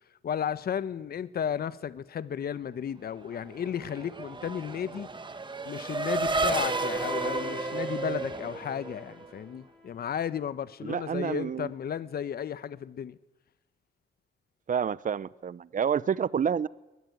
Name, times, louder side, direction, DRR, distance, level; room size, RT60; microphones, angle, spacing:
voice 1, 0.2-5.1 5.6-13.2, left 8 dB, 50° left, 1.1 m, -34 dB
Race car auto racing / Accelerating revving vroom, 3.3-9.4, right 3 dB, 25° right, 1.7 m, -32 dB
Bowed string instrument, 6.3-10.2, left 4 dB, 5° left, 4.6 m, -44 dB
voice 2, 10.8-11.7 14.7-16.7, right 7 dB, 40° right, 0.9 m, -29 dB
21.5 x 20.0 x 9.6 m
cardioid pair, 90°, 20 cm